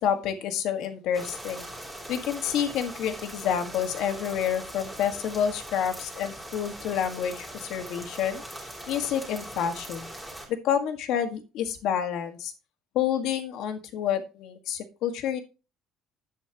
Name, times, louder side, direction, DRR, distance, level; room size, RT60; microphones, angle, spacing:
voice 1, 0.0-1.7 2.1-8.4 8.9-10.1 10.5-12.5 13.0-15.4, left 9 dB, 60° left, 7 dB, 1.7 m, -28 dB
sound 1, 1.1-10.5, right 1 dB, ahead, 3.1 m, -41 dB
11.0 x 8.5 x 3.0 m, 0.31 s
cardioid pair, 170°, 0 cm